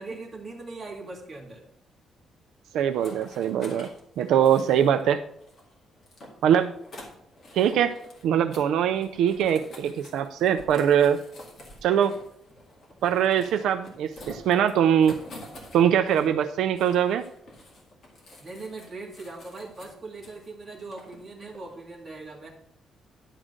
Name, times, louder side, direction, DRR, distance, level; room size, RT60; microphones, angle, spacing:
voice 1, 0.0-1.7 18.4-22.5, right 3 dB, 20° right, -1 dB, 1.9 m, -40 dB
voice 2, 2.7-3.9 4.2-5.2 6.4-6.7 7.5-7.9 8.2-11.2 11.8-12.2 13.0-15.2 15.7-17.2, right 9 dB, 80° right, 9 dB, 0.4 m, -22 dB
sound 1, 2.8-5.1 5.4-8.3 8.5-8.7 8.9-16.5 16.8-20.5 20.9-21.8, left 1 dB, 35° left, 2.1 m, -48 dB
11.0 x 3.8 x 6.4 m, 0.74 s
cardioid pair, 180°, 0 cm